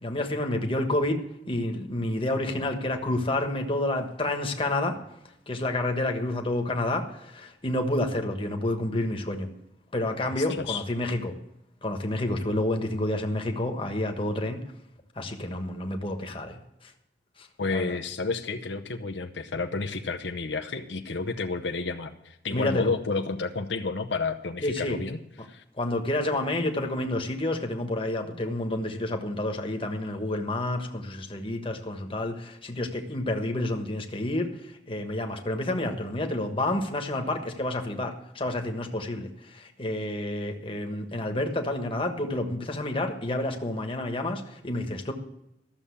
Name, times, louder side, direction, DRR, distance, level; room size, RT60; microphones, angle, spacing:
voice 1, 0.0-5.0 5.5-9.5 9.9-11.3 11.8-14.6 15.1-16.9 17.4-18.0 22.5-22.9 24.6-25.0 25.8-45.1, left 1 dB, 30° left, 4 dB, 1.3 m, -29 dB
voice 2, 10.4-10.8 17.6-25.6, left 4 dB, 80° left, 7 dB, 0.8 m, -31 dB
13.5 x 7.1 x 8.4 m, 0.85 s
head